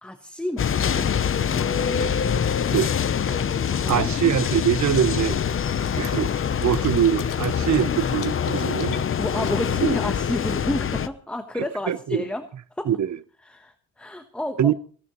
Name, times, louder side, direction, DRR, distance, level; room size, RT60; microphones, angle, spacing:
voice 1, 0.0-1.1 1.5-2.0 3.7-4.4 9.2-12.5 12.8-12.9 13.4-14.7, left 1 dB, 5° left, 1.2 m, -31 dB
sound 1, 0.6-11.1, left 8 dB, 40° left, 0.7 m, -25 dB
voice 2, 1.7-2.3 2.7-2.9 3.9-5.4 5.9-9.0 9.8-9.9 11.9-12.3 12.9-13.2 14.6-14.7, right 10 dB, 55° right, 0.9 m, -23 dB
sound 2, 3.0-10.2, left 7 dB, 65° left, 2.6 m, -40 dB
29.5 x 11.5 x 3.1 m
cardioid pair, 100°, 34 cm